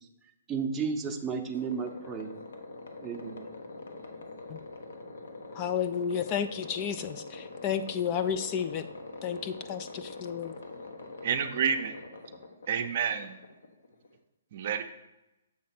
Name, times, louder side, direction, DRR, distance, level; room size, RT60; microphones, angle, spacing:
voice 1, 0.5-2.3 3.0-3.4, right 5 dB, 10° right, 2 dB, 0.7 m, -33 dB
sound 1, 1.5-14.2, left 3 dB, 80° left, 1.1 m, -44 dB
voice 2, 5.5-8.9 9.2-10.5, left 8 dB, 25° left, 10 dB, 0.3 m, -32 dB
voice 3, 11.2-11.9 12.7-13.4 14.5-14.8, right 7 dB, 50° right, 8 dB, 0.6 m, -29 dB
7.2 x 3.2 x 5.9 m, 0.92 s
hypercardioid pair, 155°, 0 cm